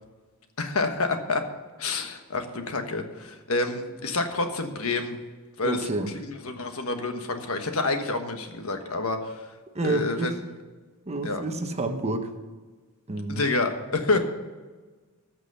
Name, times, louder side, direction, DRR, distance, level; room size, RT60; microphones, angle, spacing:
voice 1, 0.6-1.4 1.8-5.2 5.6-5.9 6.1-9.5 9.8-10.4 11.2-11.4 13.3-14.2, left 3 dB, 70° left, 6 dB, 1.3 m, -28 dB
voice 2, 5.6-6.1 9.7-10.3 11.1-12.3 13.1-13.4, right 2 dB, 30° right, 7 dB, 1.0 m, -28 dB
15.0 x 6.1 x 6.8 m, 1.3 s
head